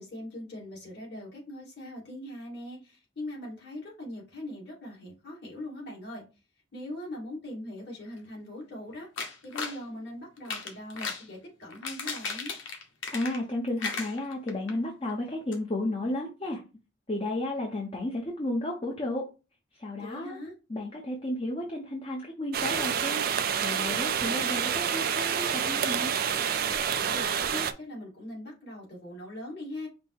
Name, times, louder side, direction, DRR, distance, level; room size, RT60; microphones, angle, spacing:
voice 1, 0.0-6.2 6.7-9.1 9.4-12.5 20.0-20.5 27.0-29.9, left 1 dB, 55° left, 2.3 m, -41 dB
sound 1, 9.2-9.8 10.4-11.3 11.7-13.5 13.8-14.7 15.1-15.2 15.5-15.6, left 4 dB, 85° left, 1.0 m, -35 dB
voice 2, 13.1-16.6 17.1-19.3 19.8-20.4 20.7-23.2 23.6-26.1, left 1 dB, 30° left, 0.7 m, -33 dB
sound 2, 22.5-27.7, right 7 dB, 50° right, 0.4 m, -28 dB
5.3 x 2.1 x 4.3 m
head